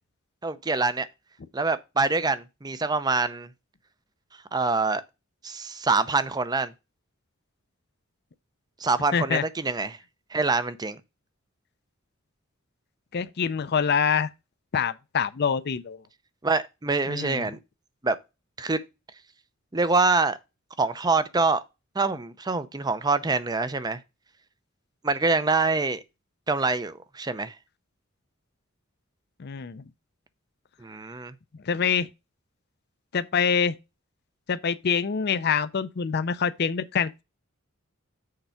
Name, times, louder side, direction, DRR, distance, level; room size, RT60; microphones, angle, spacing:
voice 1, 0.4-1.1 1.5-3.5 4.5-5.0 5.4-6.7 8.8-10.0 10.3-11.0 16.4-17.6 18.0-18.2 18.6-18.8 19.7-20.4 20.8-21.6 21.9-24.0 25.0-26.0 26.5-27.5 30.8-31.3, right 3 dB, 20° right, 0.6 m, -25 dB
voice 2, 9.1-9.4 13.1-14.3 14.7-16.0 17.1-17.5 29.4-29.8 31.6-32.1 33.1-33.7 34.5-37.2, left 6 dB, 50° left, 0.5 m, -25 dB
6.6 x 4.5 x 5.7 m
head